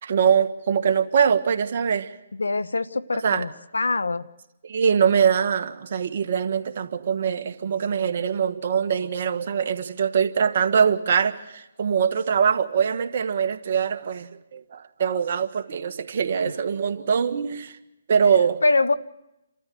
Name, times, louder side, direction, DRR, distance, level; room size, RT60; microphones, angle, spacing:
voice 1, 0.0-2.1 3.2-3.4 4.6-17.7 18.1-18.6, right 7 dB, 50° right, 6 dB, 1.7 m, -23 dB
voice 2, 2.4-4.3 18.6-18.9, left 3 dB, 90° left, 15 dB, 1.0 m, -23 dB
29.5 x 13.5 x 8.0 m, 0.94 s
hypercardioid pair, 150°, 0 cm